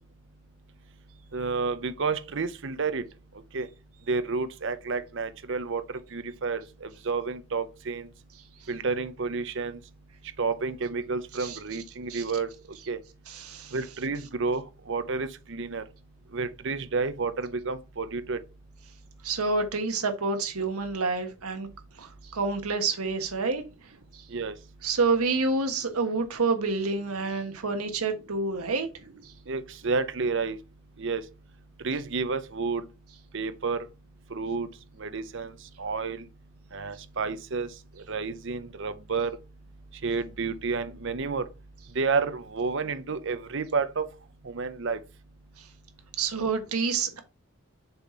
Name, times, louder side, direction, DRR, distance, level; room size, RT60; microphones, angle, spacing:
voice 1, 1.3-3.0 3.5-3.7 4.1-5.8 6.1-8.1 8.7-9.8 10.4-12.5 12.9-13.0 13.7-15.8 16.3-18.4 24.3-24.5 29.5-30.6 31.0-31.2 31.8-32.8 33.3-33.8 34.3-34.7 35.0-35.5 35.8-36.2 36.7-37.7 38.1-39.4 40.0-41.4 42.0-44.1 44.4-45.0, right 4 dB, 55° right, 0.7 m, -30 dB
voice 2, 13.3-13.7 19.2-21.7 22.0-23.6 24.1-24.2 24.8-28.9 29.2-29.3 46.2-47.2, right 4 dB, 85° right, 1.4 m, -28 dB
6.6 x 4.2 x 4.4 m
head